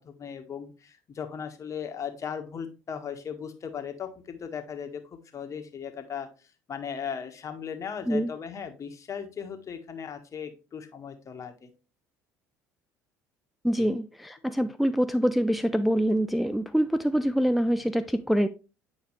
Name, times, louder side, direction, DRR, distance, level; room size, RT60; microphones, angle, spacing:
voice 1, 0.0-11.7 13.7-13.9, left 7 dB, 40° left, 1.4 m, -37 dB
voice 2, 13.6-18.5, equal, ahead, 0.4 m, -25 dB
8.8 x 5.0 x 3.2 m
hypercardioid pair, 65°, 8 cm